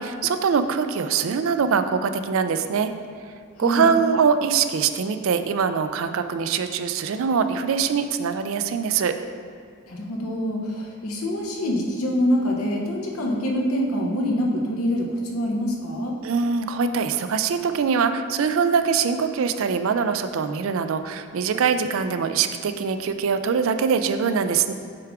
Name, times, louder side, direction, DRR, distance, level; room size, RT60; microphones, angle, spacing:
voice 1, 0.0-2.9 3.6-9.1 16.2-24.7, right 6 dB, 65° right, 9 dB, 0.4 m, -23 dB
voice 2, 9.9-16.1, equal, 75° left, 0 dB, 0.9 m, -25 dB
7.6 x 4.7 x 3.6 m, 2.1 s
head